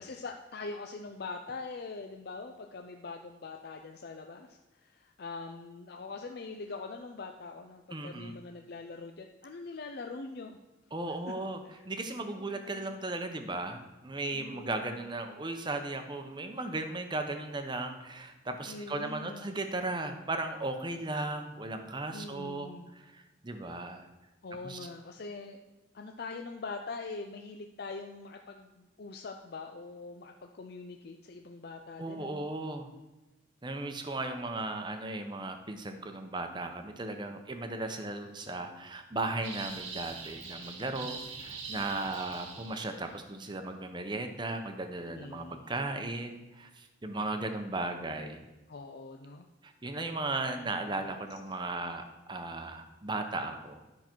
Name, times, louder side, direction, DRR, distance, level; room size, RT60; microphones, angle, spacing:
voice 1, 0.0-10.6 11.1-11.3 11.7-11.8 12.4-13.0 14.3-15.1 18.6-19.4 22.1-22.9 24.4-25.6 25.9-32.5 40.9-41.4 45.1-45.7 48.7-49.5 50.5-50.8, left 3 dB, 55° left, 4 dB, 0.5 m, -43 dB
voice 2, 7.9-8.3 10.9-22.7 23.1-24.1 24.6-24.8 32.0-32.9 33.6-48.5 49.6-53.8, right 2 dB, 25° right, 6 dB, 0.8 m, -36 dB
sound 1, 39.4-43.1, right 5 dB, 90° right, 1.6 m, -43 dB
10.5 x 5.9 x 4.5 m, 1.1 s
head